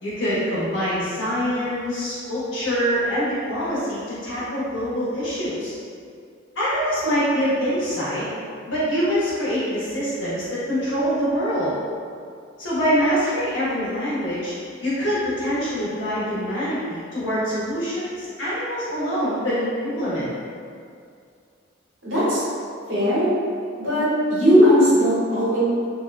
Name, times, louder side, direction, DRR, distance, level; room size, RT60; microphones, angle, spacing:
voice 1, 0.0-5.8 6.5-8.3 8.7-11.7 12.6-14.5 14.8-20.3, equal, 70° left, -10 dB, 1.0 m, -24 dB
voice 2, 22.0-22.4 22.9-23.3 23.8-25.6, equal, 75° right, -11 dB, 1.2 m, -18 dB
2.7 x 2.2 x 2.5 m, 2.3 s
head